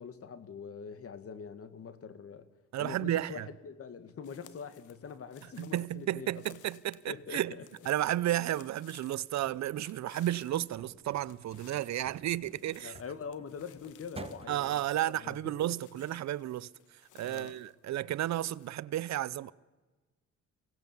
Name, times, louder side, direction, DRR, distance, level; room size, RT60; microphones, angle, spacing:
voice 1, 0.0-2.5 2.8-6.4 7.1-7.6 12.8-15.7 17.2-17.6, left 6 dB, 50° left, 1.8 m, -44 dB
voice 2, 2.7-3.5 5.6-7.5 7.9-12.9 14.5-16.7 17.2-19.5, right 13 dB, 65° right, 0.6 m, -32 dB
sound 1, 4.2-17.7 18.0-18.8, left 12 dB, 80° left, 1.2 m, -60 dB
sound 2, 10.4-14.9, right 4 dB, 20° right, 1.2 m, -52 dB
24.0 x 18.0 x 7.2 m
cardioid pair, 90°, 30 cm